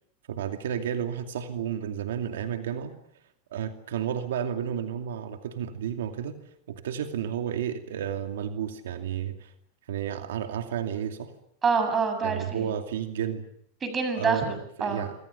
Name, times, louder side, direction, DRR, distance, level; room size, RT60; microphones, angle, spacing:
voice 1, 0.3-3.0 3.5-6.4 6.7-9.5 9.9-11.3 12.2-13.5 14.2-15.2, right 9 dB, 90° right, 6 dB, 2.6 m, -32 dB
voice 2, 11.6-12.7 13.8-14.6 14.8-15.0, right 5 dB, 20° right, 9 dB, 7.0 m, -26 dB
27.0 x 26.5 x 7.0 m, 0.69 s
supercardioid pair, 135°, 0 cm